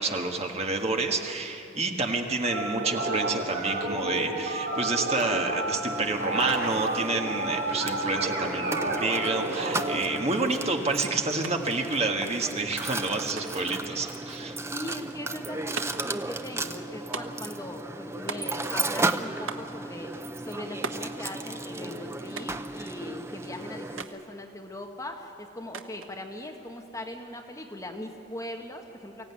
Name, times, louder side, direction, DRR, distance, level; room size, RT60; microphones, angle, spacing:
voice 1, 0.0-14.5, right 3 dB, 30° right, 3 dB, 1.5 m, -29 dB
sound 1, 2.4-10.0, right 2 dB, 70° right, 4.1 m, -30 dB
Mechanisms, 5.9-24.0, right 2 dB, 15° right, 0.6 m, -35 dB
sound 2, 11.4-11.6 11.8-12.6 13.4-13.8 14.9-15.2 15.8-16.1 17.1-17.5 18.3-18.8 19.5-19.8 20.8-21.2 22.4-22.7 24.0-24.2 25.7-26.1, right 5 dB, 90° right, 1.1 m, -38 dB
voice 2, 14.7-29.3, left 1 dB, 15° left, 2 dB, 1.4 m, -40 dB
24.0 x 16.0 x 9.6 m, 2.9 s
head